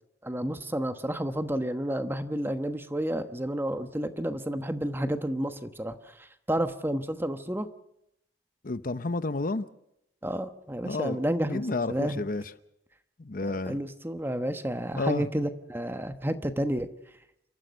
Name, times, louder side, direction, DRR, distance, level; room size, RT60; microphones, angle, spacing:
voice 1, 0.2-7.7 10.2-12.2 13.7-16.9, right 1 dB, 15° right, 1.1 m, -31 dB
voice 2, 8.6-9.7 10.8-11.2 11.4-12.5 13.2-13.8 15.0-15.3, left 3 dB, 55° left, 0.8 m, -30 dB
30.0 x 14.0 x 6.3 m
head